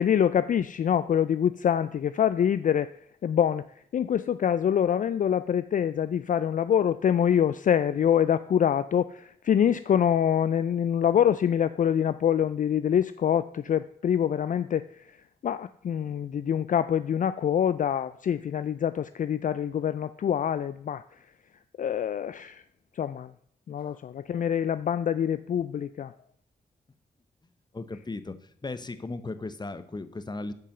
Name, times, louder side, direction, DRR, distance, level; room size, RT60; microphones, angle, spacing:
voice 1, 0.0-2.9 3.2-3.7 3.9-15.2 15.4-21.0 21.8-22.6 23.0-23.3 23.7-26.1, left 9 dB, 55° left, 14 dB, 0.4 m, -25 dB
voice 2, 27.7-28.3 28.6-30.5, left 3 dB, 25° left, 11 dB, 0.9 m, -36 dB
8.9 x 5.4 x 6.6 m, 0.67 s
cardioid pair, 60°, 16 cm